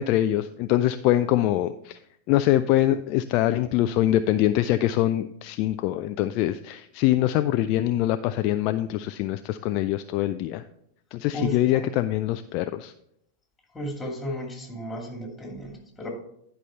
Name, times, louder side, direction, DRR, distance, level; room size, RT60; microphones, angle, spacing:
voice 1, 0.0-2.0 2.3-10.6 11.1-12.9, left 13 dB, 40° left, 11 dB, 0.3 m, -24 dB
voice 2, 11.3-11.9 13.7-16.1, equal, 10° left, 1 dB, 2.5 m, -34 dB
11.0 x 5.5 x 4.5 m, 0.75 s
figure-of-eight pair, 90°, 0 cm